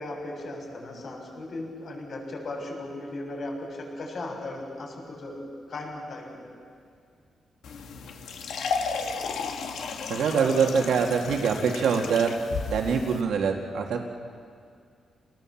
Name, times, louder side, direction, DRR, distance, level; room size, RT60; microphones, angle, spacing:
voice 1, 0.0-5.4 5.7-6.3, left 2 dB, 55° left, 0 dB, 6.7 m, -37 dB
sound 1, 7.6-13.2, left 5 dB, 85° left, 1.9 m, -34 dB
voice 2, 10.1-12.3 12.7-14.0, right 6 dB, 85° right, 2 dB, 2.1 m, -24 dB
29.5 x 19.0 x 7.3 m, 2.2 s
cardioid pair, 110°, 0 cm